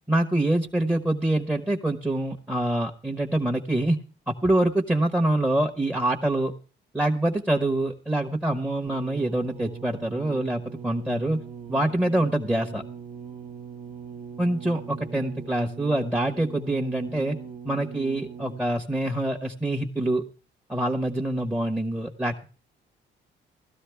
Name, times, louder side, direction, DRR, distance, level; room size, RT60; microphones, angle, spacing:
voice 1, 0.1-6.5 6.9-11.4 11.7-12.8 14.4-17.4 17.6-20.2 20.7-22.5, right 1 dB, 10° right, 2 dB, 1.1 m, -25 dB
sound 1, 8.9-19.0 19.8-19.9, right 7 dB, 40° right, 1.0 m, -41 dB
16.0 x 13.0 x 3.4 m, 0.36 s
cardioid pair, 90°, 20 cm